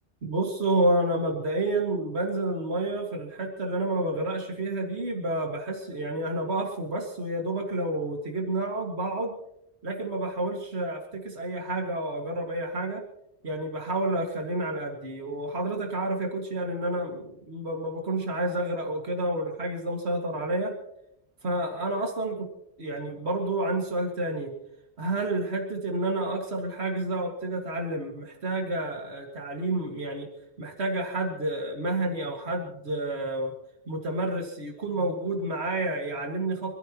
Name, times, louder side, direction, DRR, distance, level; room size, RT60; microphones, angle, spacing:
voice 1, 0.2-9.3 9.8-13.0 13.4-20.7 21.4-22.5 22.8-24.5 25.0-30.3 30.6-33.5 33.9-36.7, right 2 dB, 80° right, 0 dB, 2.4 m, -29 dB
26.5 x 14.5 x 3.0 m, 0.81 s
omnidirectional pair, 1.1 m